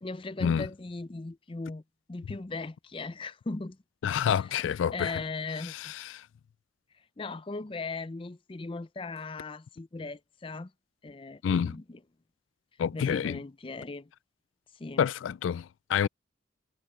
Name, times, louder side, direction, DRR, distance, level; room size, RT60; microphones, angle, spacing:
voice 1, 0.0-1.8 2.1-3.8 4.2-4.5 4.9-5.9 7.2-10.7 11.0-12.0 12.9-14.1 14.8-15.1, left 3 dB, 30° left, 0.5 m, -38 dB
voice 2, 4.0-5.2 5.7-6.2 11.4-11.7 12.8-13.4 15.0-16.1, left 8 dB, 90° left, 0.3 m, -28 dB
head